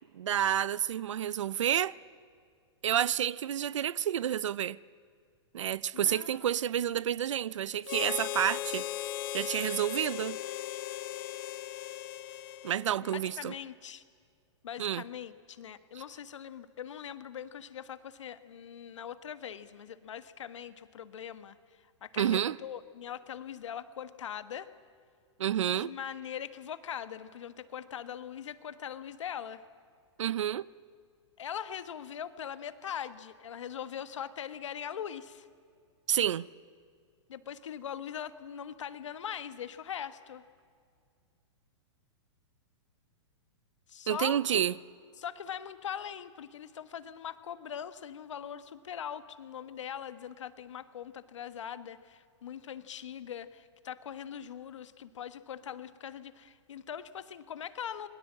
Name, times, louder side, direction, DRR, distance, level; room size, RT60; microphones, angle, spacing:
voice 1, 0.1-1.9 2.8-4.8 5.5-8.9 9.3-10.4 12.6-13.5 14.8-15.0 22.2-22.6 25.4-25.9 30.2-30.7 36.1-36.5 44.1-44.7, right 10 dB, 85° right, 0.5 m, -29 dB
voice 2, 5.9-6.5 13.1-14.0 14.6-21.5 22.0-24.7 25.6-29.6 31.4-35.5 37.3-40.4 43.9-44.7 45.2-58.1, left 9 dB, 85° left, 1.4 m, -41 dB
Harmonica, 7.8-13.3, left 13 dB, 50° left, 0.7 m, -38 dB
27.0 x 22.0 x 7.5 m
hypercardioid pair, 140°, 15 cm